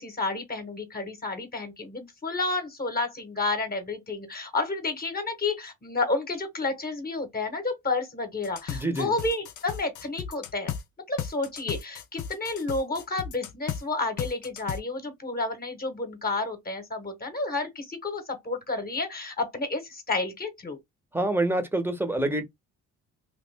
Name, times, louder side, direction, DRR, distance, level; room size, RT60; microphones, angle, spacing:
voice 1, 0.0-10.7 11.1-20.8, left 3 dB, 30° left, 1.0 m, -31 dB
sound 1, 8.4-10.8 11.2-13.8 14.2-14.8, left 8 dB, 70° left, 0.7 m, -34 dB
voice 2, 8.7-9.1 21.1-22.4, right 1 dB, 5° right, 0.8 m, -26 dB
3.0 x 2.5 x 3.3 m
cardioid pair, 90°, 30 cm